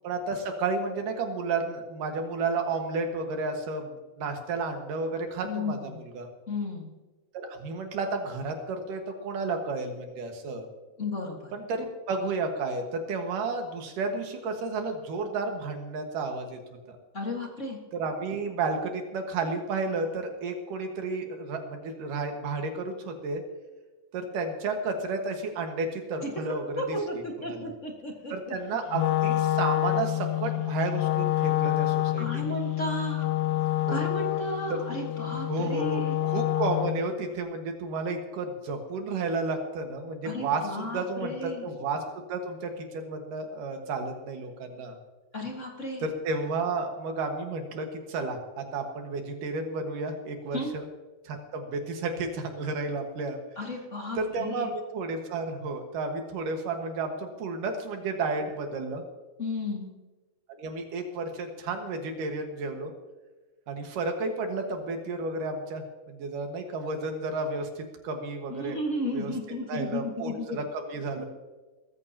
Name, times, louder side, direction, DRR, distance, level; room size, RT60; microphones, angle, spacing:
voice 1, 0.0-6.3 7.3-10.7 11.5-16.6 16.9-17.0 17.9-23.4 24.1-27.0 27.5-27.7 28.3-32.2 33.9-34.0 35.5-40.6 40.9-41.3 41.6-42.0 42.3-45.0 46.0-50.8 51.2-53.4 54.2-59.0 60.6-62.9 63.7-68.8 69.1-69.3 69.7-71.3, right 3 dB, 80° right, 4 dB, 3.2 m, -32 dB
voice 2, 5.4-6.0 6.5-6.9 11.0-11.5 17.1-17.8 26.2-26.4 26.8-28.5 32.2-33.3 33.9-36.2 40.2-41.7 45.3-46.1 50.5-50.8 53.5-54.7 59.4-59.9 68.5-70.6, left 1 dB, 35° left, 0 dB, 1.2 m, -34 dB
Wind instrument woodwind instrument, 28.9-37.1, left 15 dB, 75° left, 1.7 m, -27 dB
21.5 x 14.0 x 2.9 m, 1.2 s
omnidirectional pair, 3.8 m